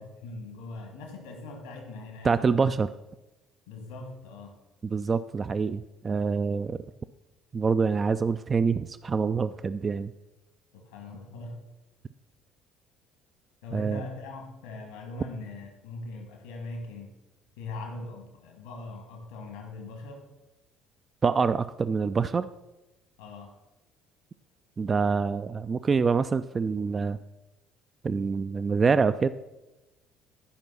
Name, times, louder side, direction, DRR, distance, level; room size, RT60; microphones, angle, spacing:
voice 1, 0.0-2.7 3.7-4.6 10.7-11.6 13.6-17.2 17.6-20.3 23.2-23.5, left 2 dB, 75° left, 3 dB, 1.8 m, -41 dB
voice 2, 2.2-2.9 4.8-6.8 7.5-10.1 13.7-14.0 21.2-22.5 24.8-27.2 28.0-29.3, right 5 dB, 30° right, 12 dB, 0.3 m, -26 dB
12.5 x 5.2 x 5.8 m, 1.0 s
figure-of-eight pair, 55°, 0 cm